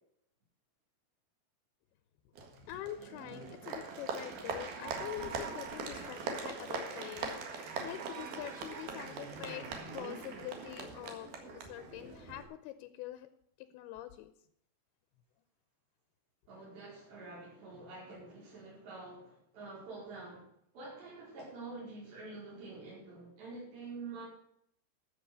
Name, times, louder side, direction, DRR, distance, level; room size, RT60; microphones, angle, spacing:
Applause, 2.4-12.5, right 4 dB, 65° right, 3.4 m, -41 dB
voice 1, 2.5-9.7 9.9-13.3 13.6-14.3, left 13 dB, 80° left, 11 dB, 2.5 m, -45 dB
voice 2, 16.5-20.4 20.7-24.3, right 3 dB, 85° right, -6 dB, 6.9 m, -47 dB
13.5 x 7.0 x 6.8 m, 0.73 s
omnidirectional pair, 4.8 m